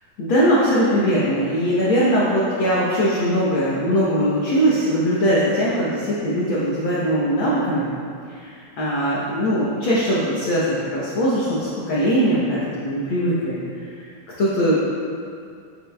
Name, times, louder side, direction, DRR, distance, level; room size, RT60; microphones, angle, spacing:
voice 1, 0.2-7.9 8.3-8.5 8.8-13.6 14.4-14.9, equal, 85° left, -7 dB, 1.1 m, -20 dB
8.1 x 6.9 x 2.2 m, 2.3 s
omnidirectional pair, 3.6 m